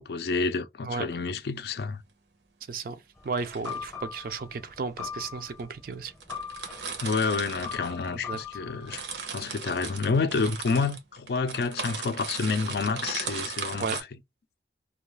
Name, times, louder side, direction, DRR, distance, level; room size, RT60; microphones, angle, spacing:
voice 1, 0.0-2.0 7.0-9.0 9.3-14.1, left 4 dB, 60° left, 0.4 m, -29 dB
sound 1, 1.1-1.4 3.2-3.9 4.8-4.9 5.6-5.7 5.9-6.0 6.2-8.5 8.7-14.0, right 5 dB, 80° right, 0.7 m, -37 dB
voice 2, 2.7-3.0 3.2-6.1 8.3-8.4 13.8-14.0, right 4 dB, 50° right, 0.4 m, -33 dB
sound 2, 3.2-9.2, left 6 dB, 15° left, 0.7 m, -41 dB
2.3 x 2.3 x 3.1 m
head